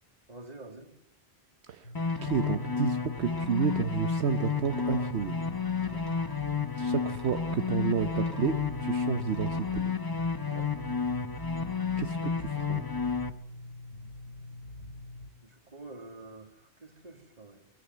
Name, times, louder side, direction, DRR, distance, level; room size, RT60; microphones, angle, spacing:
voice 1, 0.3-0.9 5.8-6.1 10.5-10.8 15.4-17.7, right 2 dB, 40° right, 6 dB, 2.5 m, -48 dB
sound 1, 1.8-15.3, left 2 dB, 85° left, 3.2 m, -45 dB
sound 2, 1.9-13.3, left 5 dB, 20° left, 0.9 m, -31 dB
sound 3, 2.1-2.5 3.1-3.8 4.5-5.1 5.7-6.4 7.0-7.5 8.0-8.6 9.2-9.7, equal, ahead, 3.7 m, -51 dB
voice 2, 2.2-5.4 6.7-9.9 12.0-12.9, right 7 dB, 80° right, 9 dB, 1.3 m, -31 dB
21.0 x 15.0 x 9.3 m, 0.76 s
omnidirectional pair, 1.1 m